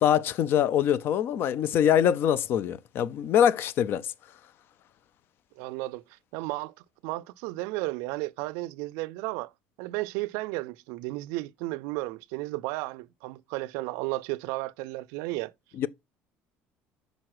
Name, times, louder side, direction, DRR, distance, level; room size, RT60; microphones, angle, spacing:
voice 1, 0.0-4.1 15.8-15.9, left 9 dB, 55° left, 0.5 m, -24 dB
voice 2, 5.6-6.0 6.3-6.7 7.0-9.5 9.8-15.5, right 20 dB, 90° right, 0.4 m, -33 dB
6.2 x 4.0 x 4.7 m
cardioid pair, 125°, 5 cm